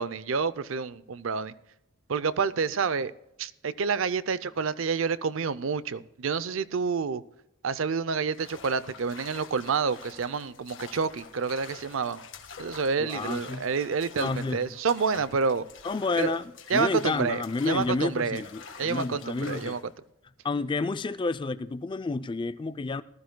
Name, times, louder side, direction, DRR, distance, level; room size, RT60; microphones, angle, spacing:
voice 1, 0.0-1.5 2.1-3.1 3.4-7.2 7.6-12.2 12.6-15.6 16.2-16.4 16.7-18.4 18.8-19.8, right 5 dB, 75° right, 0.5 m, -28 dB
sound 1, 8.3-19.9, left 5 dB, 70° left, 1.5 m, -47 dB
voice 2, 13.0-13.7 14.2-14.8 15.8-19.8 20.4-23.0, left 3 dB, 25° left, 0.3 m, -30 dB
19.0 x 13.0 x 2.2 m
head